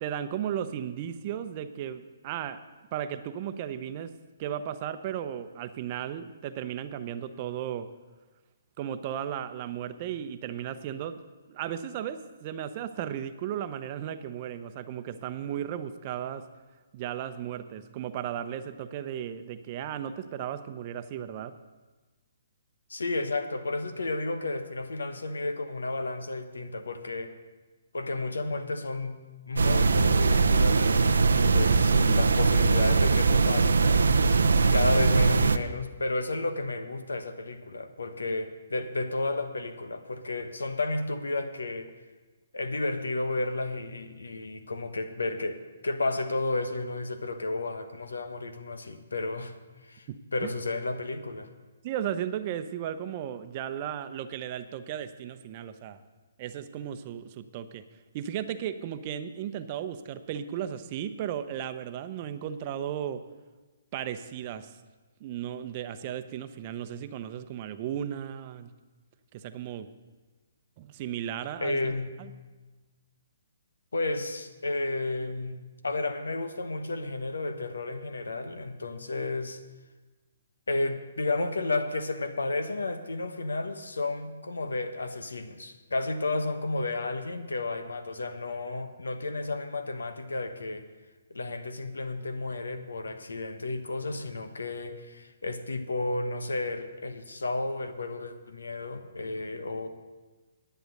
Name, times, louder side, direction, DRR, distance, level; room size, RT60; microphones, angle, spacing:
voice 1, 0.0-2.6 2.9-4.1 4.4-7.9 8.8-11.2 11.5-16.4 16.9-21.5 50.1-50.5 51.8-56.0 56.4-57.8 58.1-63.2 63.9-64.7 65.2-68.7 69.3-69.9 70.8-72.3, right 10 dB, 35° right, 10 dB, 0.7 m, -35 dB
voice 2, 22.9-27.3 27.9-41.9 42.5-49.6 49.8-51.5 71.6-72.2 73.9-79.6 80.7-90.9 91.3-99.9, left 2 dB, 90° left, 9 dB, 1.0 m, -32 dB
sound 1, 29.6-35.6, right 4 dB, 80° right, 0.6 m, -21 dB
10.5 x 9.1 x 6.6 m, 1.3 s
hypercardioid pair, 145°, 0 cm